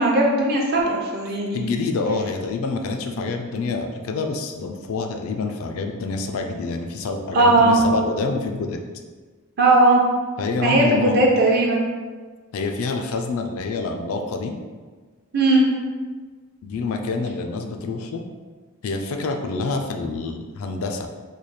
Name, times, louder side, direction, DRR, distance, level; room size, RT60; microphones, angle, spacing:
voice 1, 0.0-1.7 7.3-7.8 9.6-10.0 10.6-11.8 15.3-15.7, right 2 dB, 45° right, -2 dB, 0.6 m, -17 dB
voice 2, 1.5-8.8 10.4-11.4 12.5-14.5 16.6-18.2 18.8-21.1, left 3 dB, 65° left, 4 dB, 0.4 m, -27 dB
3.2 x 2.2 x 4.0 m, 1.4 s
head